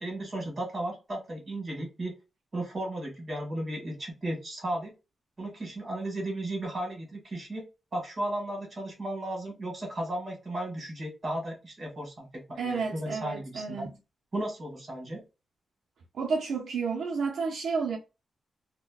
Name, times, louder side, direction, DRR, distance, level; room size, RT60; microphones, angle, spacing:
voice 1, 0.0-2.2 2.5-4.9 5.4-7.6 7.9-13.9 14.3-15.2, right 1 dB, 30° right, 1.6 m, -35 dB
voice 2, 12.6-13.9 16.1-18.0, right 5 dB, 70° right, 0.6 m, -31 dB
4.2 x 2.1 x 2.3 m
wide cardioid pair, 165°, 0 cm